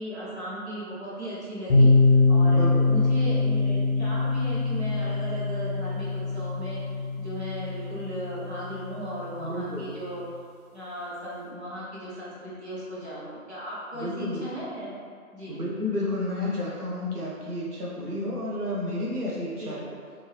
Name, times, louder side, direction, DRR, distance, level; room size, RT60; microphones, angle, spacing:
voice 1, 0.0-1.9 2.3-6.8 7.2-10.2 10.7-14.9 15.3-15.6 19.6-19.8, right 1 dB, 50° right, -9 dB, 1.1 m, -36 dB
sound 1, 1.7-9.4, left 3 dB, ahead, 0.8 m, -23 dB
voice 2, 2.5-2.9 9.4-9.9 13.9-14.5 15.5-19.8, left 1 dB, 85° right, -6 dB, 1.0 m, -31 dB
2.9 x 2.7 x 3.3 m, 2.1 s
figure-of-eight pair, 170°, 45 cm